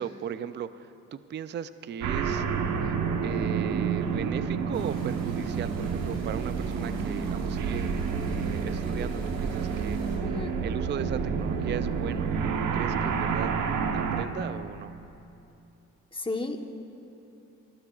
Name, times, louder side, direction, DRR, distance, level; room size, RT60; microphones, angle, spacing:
voice 1, 0.0-2.5 3.2-7.9 8.3-10.0 10.6-12.3 12.7-13.5 13.9-14.9, right 8 dB, 35° right, 13 dB, 0.4 m, -37 dB
sound 1, 2.0-14.3, right 6 dB, 80° right, 1.1 m, -29 dB
sound 2, 4.7-10.2, right 3 dB, 60° right, 4.1 m, -50 dB
voice 2, 10.2-10.6 16.1-16.7, left 2 dB, 15° left, 4 dB, 1.1 m, -33 dB
29.0 x 14.5 x 2.4 m, 2.8 s
cardioid pair, 90°, 30 cm